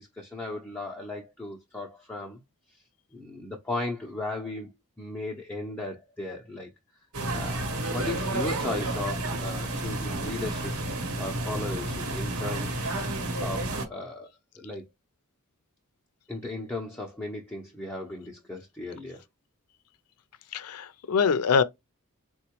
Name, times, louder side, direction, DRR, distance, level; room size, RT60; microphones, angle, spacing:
voice 1, 0.0-2.4 3.1-6.7 7.3-10.7 11.2-14.3 14.6-14.8 16.3-19.2, left 2 dB, 10° left, 0.6 m, -36 dB
sound 1, 7.1-13.9, right 2 dB, 75° right, 1.1 m, -31 dB
voice 2, 20.5-21.6, left 6 dB, 85° left, 0.5 m, -24 dB
4.1 x 2.2 x 2.9 m
head